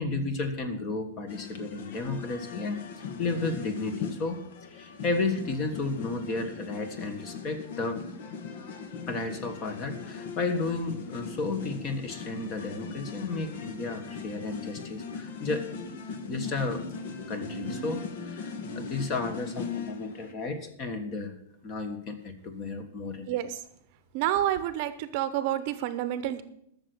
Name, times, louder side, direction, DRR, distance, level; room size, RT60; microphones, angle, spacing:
voice 1, 0.0-4.4 4.7-8.0 9.1-15.7 16.1-16.9 17.3-21.3 21.6-23.4, left 3 dB, 25° left, 9 dB, 1.4 m, -33 dB
sound 1, 1.3-20.3, left 5 dB, 60° left, 1.4 m, -39 dB
voice 2, 24.1-26.4, right 12 dB, 40° right, 12 dB, 0.8 m, -28 dB
12.5 x 6.8 x 7.9 m, 0.72 s
supercardioid pair, 165°, 0 cm